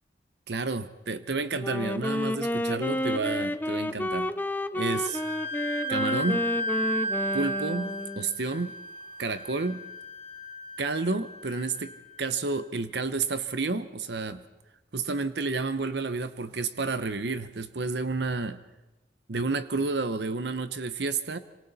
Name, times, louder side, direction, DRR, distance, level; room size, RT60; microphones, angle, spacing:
voice 1, 0.5-4.3 4.7-5.2 5.9-6.5 7.3-8.7 9.2-9.9 10.8-14.4 14.9-18.6 19.3-21.4, right 3 dB, 70° right, 11 dB, 0.9 m, -30 dB
Wind instrument woodwind instrument, 1.6-8.4, left 1 dB, 10° left, 0.7 m, -30 dB
Wind instrument woodwind instrument 2, 4.9-12.3, equal, 40° left, 3.1 m, -34 dB
27.0 x 26.5 x 4.2 m, 1.1 s
head